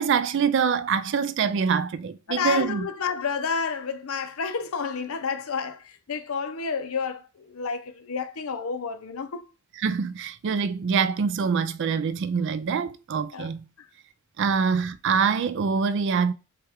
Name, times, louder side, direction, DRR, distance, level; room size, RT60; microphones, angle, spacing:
voice 1, 0.0-2.9 9.8-13.6 14.4-16.3, right 6 dB, 55° right, 0.3 m, -25 dB
voice 2, 2.3-9.5 13.3-13.5 13.8-13.9, left 5 dB, 75° left, 0.6 m, -30 dB
6.2 x 2.3 x 3.5 m
head